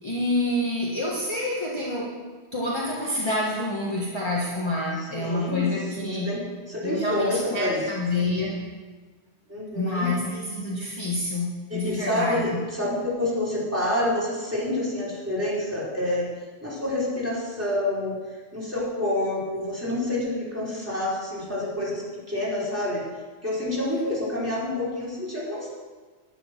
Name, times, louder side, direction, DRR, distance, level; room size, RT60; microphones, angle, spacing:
voice 1, 0.0-2.2 2.5-6.4 6.8-8.6 9.7-12.5, left 1 dB, 25° left, -5 dB, 1.6 m, -27 dB
voice 2, 5.0-5.7 5.9-6.4 6.7-7.8 9.5-10.1 11.7-16.3 16.6-18.1 18.5-22.0 22.3-23.0 23.4-25.7, left 1 dB, 15° right, -8 dB, 4.7 m, -28 dB
10.5 x 10.0 x 6.1 m, 1.4 s
omnidirectional pair, 1.1 m